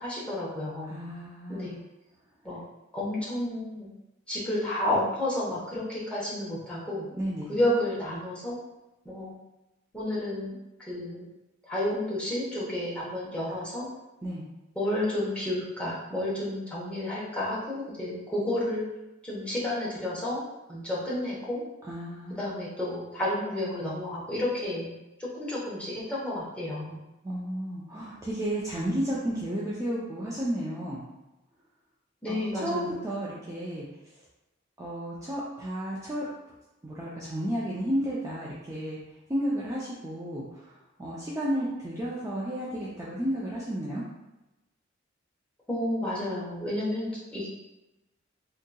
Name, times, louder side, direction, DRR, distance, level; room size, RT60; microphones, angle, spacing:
voice 1, 0.0-0.9 1.5-1.8 2.4-2.6 2.9-3.9 4.3-7.1 7.5-8.6 9.0-9.3 9.9-11.3 11.7-13.9 14.8-18.9 19.2-20.4 20.7-21.6 22.3-24.9 25.2-27.0 32.2-33.0 45.7-47.5, left 1 dB, 5° left, -7 dB, 0.9 m, -31 dB
voice 2, 0.9-1.7 7.1-7.5 14.2-14.4 21.9-22.5 27.2-31.1 32.3-33.8 34.8-36.2 36.8-39.0 39.3-40.7 41.0-44.0, equal, 15° right, -7 dB, 0.4 m, -32 dB
3.6 x 2.8 x 2.2 m, 0.97 s
head